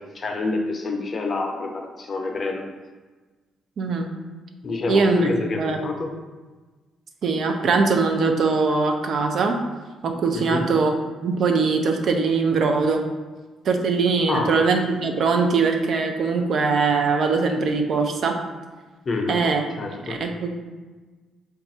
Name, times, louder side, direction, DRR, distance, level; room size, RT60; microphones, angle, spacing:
voice 1, 0.0-2.7 4.6-6.1 10.3-10.7 14.3-14.6 19.1-19.4 19.8-20.3, left 3 dB, 45° left, 3 dB, 0.5 m, -27 dB
voice 2, 3.8-4.1 4.9-5.3 5.6-5.8 7.2-9.6 10.0-10.9 11.2-13.0 13.6-18.4 19.3-19.6 20.1-20.5, right 4 dB, 60° right, 4 dB, 0.5 m, -21 dB
3.5 x 2.4 x 4.2 m, 1.3 s
cardioid pair, 90°, 0 cm